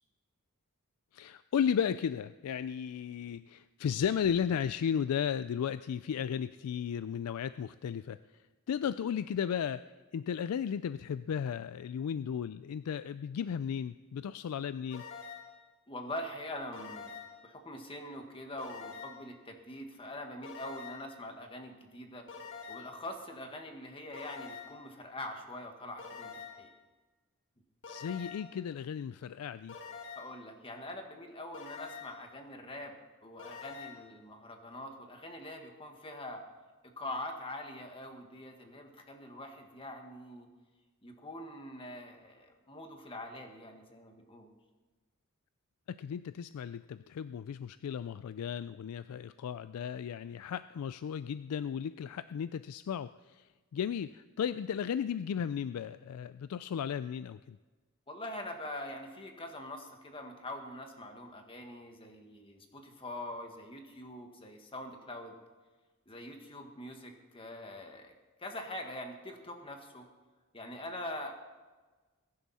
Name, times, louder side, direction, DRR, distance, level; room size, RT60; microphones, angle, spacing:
voice 1, 1.1-8.2 8.7-9.8 10.1-15.0 27.9-29.8 45.9-57.6, left 8 dB, 85° left, 14 dB, 0.3 m, -35 dB
sound 1, 14.9-15.6 16.7-17.5 18.6-19.3 20.4-21.2 22.3-23.0 24.1-24.9 26.0-26.7 27.8-28.6 29.7-30.4 31.5-32.3 33.4-34.1, left 5 dB, 55° left, 2.0 m, -46 dB
voice 2, 15.9-17.1 17.4-22.2 22.7-26.7 30.1-36.4 37.0-40.5 41.0-44.5 58.1-65.4 66.1-68.1 68.4-70.0 70.5-71.3, left 1 dB, 25° left, 4 dB, 1.6 m, -44 dB
21.5 x 10.5 x 4.2 m, 1.3 s
head